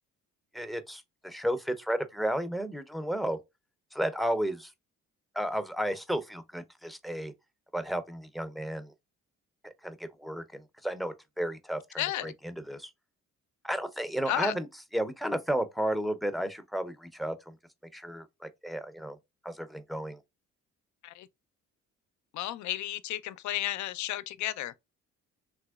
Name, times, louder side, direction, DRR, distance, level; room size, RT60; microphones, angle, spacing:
voice 1, 0.5-3.4 3.9-4.7 5.3-7.3 7.7-8.9 9.6-12.9 13.6-14.7 14.9-17.6 17.9-19.2 19.4-20.2, right 1 dB, ahead, 0.5 m, -33 dB
voice 2, 12.0-12.3 14.3-14.5 21.0-21.3 22.3-24.7, left 14 dB, 75° left, 0.5 m, -33 dB
3.5 x 2.9 x 2.3 m
cardioid pair, 90°, 30 cm